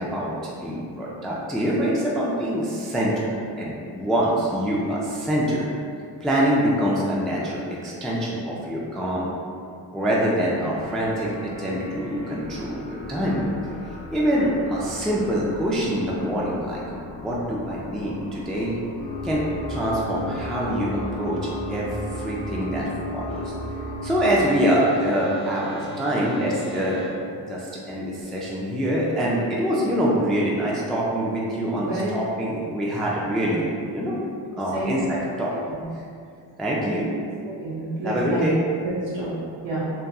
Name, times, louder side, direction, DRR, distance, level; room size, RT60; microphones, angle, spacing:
voice 1, 0.0-5.7 6.2-9.3 9.9-13.4 14.1-16.8 17.1-18.8 19.2-19.4 19.7-21.4 21.7-23.5 24.0-27.0 27.5-34.2 34.6-35.5 36.6-37.1 38.0-38.6, equal, ahead, -5 dB, 0.3 m, -25 dB
sound 1, 10.6-27.1, left 1 dB, 60° left, 0.9 m, -36 dB
voice 2, 31.8-32.1 33.4-33.5 34.7-35.1 35.5-35.8 36.8-37.0 37.4-38.5 38.8-39.8, right 2 dB, 60° right, -9 dB, 0.7 m, -30 dB
2.6 x 2.3 x 2.3 m, 2.4 s
supercardioid pair, 40°, 49 cm